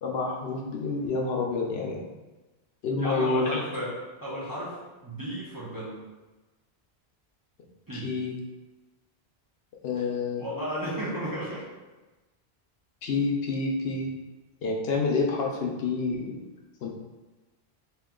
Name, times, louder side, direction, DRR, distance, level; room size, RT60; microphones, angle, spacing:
voice 1, 0.0-2.1 2.8-3.6 7.9-8.3 9.8-10.4 13.0-14.1 14.6-16.4 16.8-16.9, left 4 dB, 70° left, 0 dB, 0.8 m, -28 dB
voice 2, 3.0-6.0 7.9-8.1 10.4-11.7, equal, 20° right, -8 dB, 0.7 m, -34 dB
3.0 x 2.9 x 3.6 m, 1.1 s
omnidirectional pair, 1.1 m